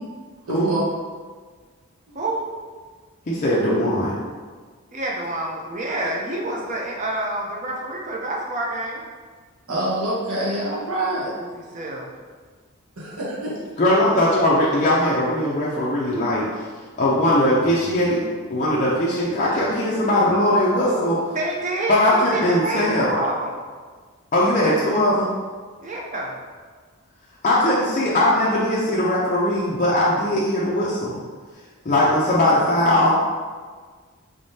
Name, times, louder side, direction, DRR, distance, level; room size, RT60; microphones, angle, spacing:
voice 1, 0.5-0.8 9.7-11.3 13.0-13.5, right 1 dB, 75° right, -6 dB, 1.0 m, -25 dB
voice 2, 3.3-4.2 13.8-16.6 17.0-18.2 18.5-21.3 21.9-23.2 24.3-25.3 27.4-31.2 31.8-33.2, left 1 dB, 35° left, -6 dB, 0.4 m, -20 dB
voice 3, 4.9-9.0 11.4-12.1 17.7-17.8 21.3-23.5 25.8-26.4, right 2 dB, 35° right, -1 dB, 0.5 m, -28 dB
3.5 x 3.4 x 2.7 m, 1.5 s
head